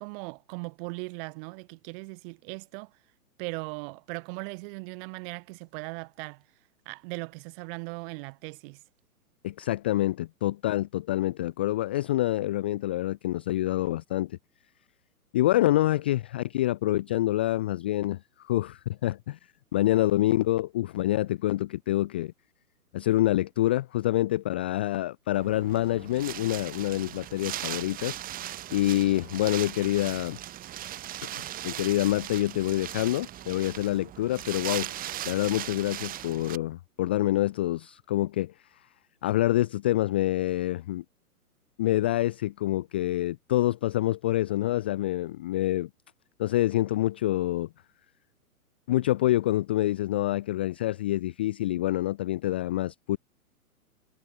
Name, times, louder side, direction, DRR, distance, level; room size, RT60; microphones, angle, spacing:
voice 1, 0.0-2.9 3.4-6.4 6.8-8.8, right 31 dB, 35° right, 6.5 m, -38 dB
voice 2, 9.4-14.4 15.3-19.4 19.7-22.3 22.9-28.2 28.7-30.4 31.2-31.3 31.6-34.9 35.2-38.5 39.2-41.0 41.8-45.9 46.4-47.7 48.9-53.2, left 15 dB, 10° left, 0.4 m, -26 dB
Wind, 25.3-36.6, right 13 dB, 20° right, 1.9 m, -38 dB
hypercardioid pair, 125°, 45 cm